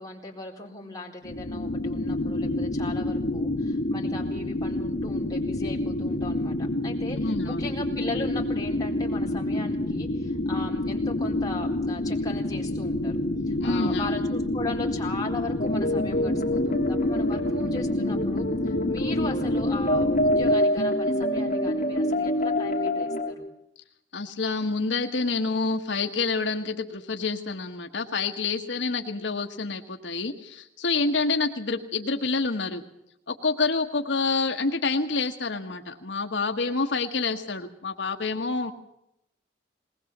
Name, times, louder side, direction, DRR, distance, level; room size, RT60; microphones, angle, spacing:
voice 1, 0.0-13.2 13.5-23.5, left 2 dB, 20° left, -1 dB, 4.4 m, -38 dB
sound 1, 1.2-20.6, left 1 dB, 65° left, 1.7 m, -28 dB
voice 2, 7.1-7.7 13.6-14.1 24.1-32.8 33.3-38.7, left 3 dB, 80° left, 5 dB, 1.4 m, -28 dB
sound 2, 15.6-23.3, left 1 dB, 45° left, 2.9 m, -26 dB
21.0 x 20.0 x 7.3 m, 0.80 s
head